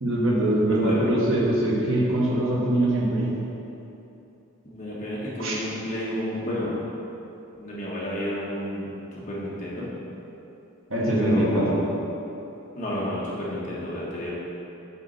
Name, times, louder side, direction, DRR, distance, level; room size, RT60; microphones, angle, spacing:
voice 1, 0.0-3.3 5.4-5.6 10.9-11.8, right 1 dB, 70° right, -5 dB, 1.4 m, -22 dB
voice 2, 0.7-1.0 4.6-6.8 7.5-8.9 9.1-9.9 11.2-11.9 12.8-14.3, left 1 dB, 35° left, -7 dB, 1.4 m, -31 dB
8.5 x 4.2 x 4.0 m, 2.9 s
head